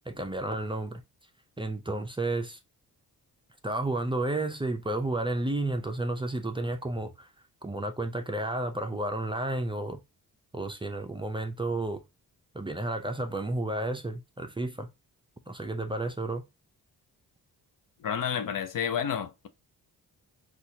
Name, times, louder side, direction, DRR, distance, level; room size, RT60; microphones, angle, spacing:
voice 1, 0.1-1.0 1.6-2.6 3.6-7.3 7.6-10.0 10.5-12.0 12.5-14.9 15.5-16.4, right 2 dB, 15° right, 0.5 m, -31 dB
voice 2, 18.0-19.5, left 8 dB, 55° left, 0.6 m, -30 dB
4.1 x 2.4 x 2.7 m
cardioid pair, 75°, 38 cm